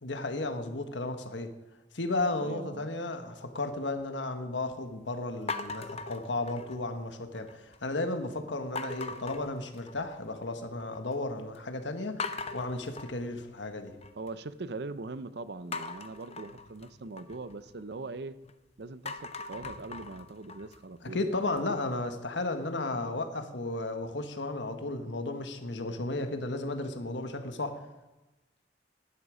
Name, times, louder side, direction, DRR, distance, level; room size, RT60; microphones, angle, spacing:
voice 1, 0.0-1.5 1.9-13.9 21.0-27.8, left 2 dB, 85° left, 7 dB, 1.5 m, -34 dB
voice 2, 2.4-2.9 14.2-18.4 18.8-21.3, right 3 dB, 65° right, 14 dB, 0.7 m, -41 dB
sound 1, 5.5-7.0 7.3-7.9 8.8-10.3 10.6-11.2 11.5-11.6 12.2-14.3 15.7-18.5 18.9-21.8, left 3 dB, 35° left, 0.8 m, -41 dB
16.0 x 11.0 x 5.0 m, 1.1 s
head